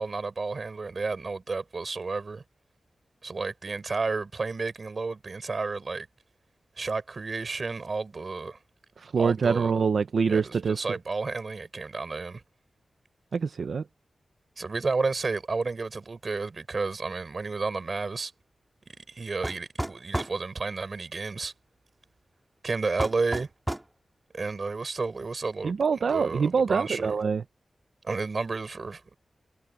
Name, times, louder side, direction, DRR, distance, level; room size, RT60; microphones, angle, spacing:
voice 1, 0.0-2.4 3.2-6.1 6.8-8.6 9.2-9.7 10.3-12.4 14.6-18.3 19.0-21.5 22.6-23.5 24.3-25.8 26.1-27.2 28.0-29.2, right 4 dB, 40° right, 5.3 m, -31 dB
voice 2, 9.0-11.0 13.3-13.8 25.6-27.4, right 5 dB, 70° right, 0.7 m, -25 dB
sound 1, 19.4-20.4 23.0-23.9, right 1 dB, 10° right, 1.9 m, -31 dB
wide cardioid pair, 145°, 0 cm